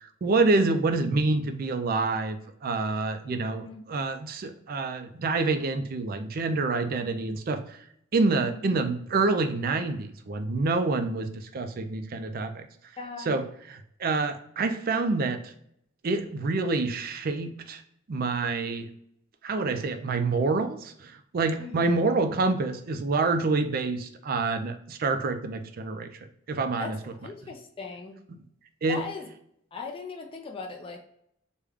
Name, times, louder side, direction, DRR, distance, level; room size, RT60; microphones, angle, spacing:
voice 1, 0.0-7.8 8.1-12.7 13.2-15.5 16.0-17.8 18.1-18.9 19.4-26.1 26.5-27.0 28.3-28.4 28.8-29.0, right 3 dB, 45° right, 8 dB, 0.4 m, -27 dB
voice 2, 3.3-3.8 8.2-8.6 13.0-13.3 21.6-21.9 26.8-26.9 27.2-28.2 28.9-29.2 29.7-31.1, left 4 dB, 25° left, 1 dB, 0.4 m, -39 dB
3.5 x 2.2 x 3.4 m, 0.71 s
head